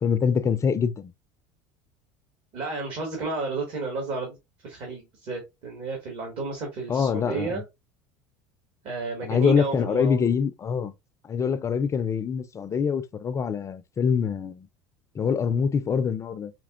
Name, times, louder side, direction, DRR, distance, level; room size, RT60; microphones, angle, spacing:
voice 1, 0.0-1.1 6.9-7.6 9.2-10.9 11.2-14.7 15.1-16.5, left 6 dB, 30° left, 0.4 m, -25 dB
voice 2, 2.5-4.4 4.6-7.6 8.8-10.3, right 3 dB, 55° right, 2.0 m, -32 dB
5.1 x 2.8 x 2.4 m
supercardioid pair, 100°, 11 cm